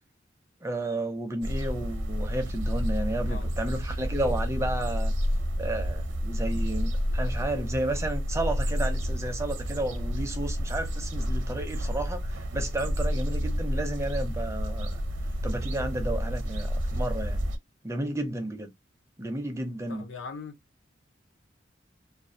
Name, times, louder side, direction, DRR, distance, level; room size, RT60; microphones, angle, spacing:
voice 1, 0.6-5.1 5.6-15.0 15.4-17.4 17.8-18.7 19.2-20.1, right 1 dB, 15° right, 0.4 m, -32 dB
sound 1, 1.4-17.6, equal, 70° right, 0.7 m, -30 dB
voice 2, 1.9-2.3 3.2-3.5 19.9-20.5, left 5 dB, 75° left, 0.6 m, -42 dB
2.4 x 2.3 x 2.6 m
head